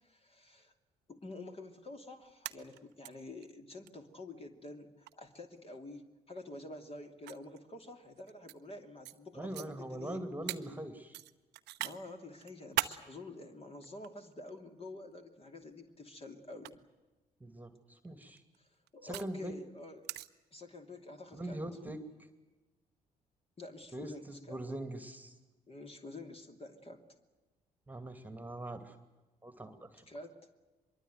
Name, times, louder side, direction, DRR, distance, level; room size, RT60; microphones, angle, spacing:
voice 1, 0.0-0.7 1.1-10.2 11.8-16.8 18.9-20.1 20.5-21.6 23.6-24.6 25.7-27.0 30.1-30.5, left 2 dB, 30° left, 5 dB, 2.9 m, -48 dB
sound 1, 2.2-3.1 3.4-3.5 3.9-4.0 5.1-5.3 6.4-6.5 7.3-8.6 9.0-9.2 9.5-9.7 10.5-10.6 11.1-12.0 12.4-13.0 13.8-14.6 15.6-15.9 16.5-16.7 18.0-19.3 20.0-20.3, right 17 dB, 55° right, 0.8 m, -38 dB
voice 2, 9.3-11.2 17.4-18.4 19.0-19.5 21.3-22.3 23.9-25.3 27.9-29.0 29.4-30.0, right 1 dB, 10° right, 9 dB, 2.4 m, -42 dB
24.0 x 22.5 x 8.0 m, 1.2 s
figure-of-eight pair, 45°, 20 cm